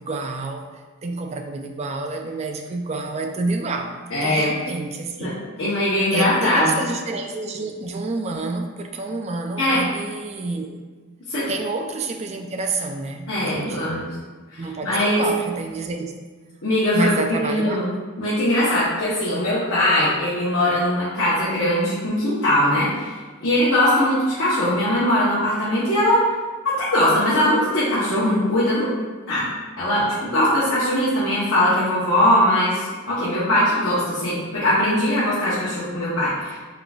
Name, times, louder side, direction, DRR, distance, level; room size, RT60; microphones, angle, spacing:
voice 1, 0.0-5.3 6.1-10.8 11.5-14.0 14.6-16.1 16.9-17.8 36.3-36.4, right 3 dB, 30° right, 4 dB, 0.3 m, -28 dB
voice 2, 4.1-4.5 5.2-5.3 5.6-6.8 9.6-9.8 11.3-11.5 13.3-14.1 14.5-15.2 16.6-17.9 18.2-26.2 26.6-28.9 29.3-29.5 29.8-36.6, left 1 dB, 60° left, -10 dB, 1.0 m, -21 dB
4.8 x 3.8 x 2.4 m, 1.4 s
head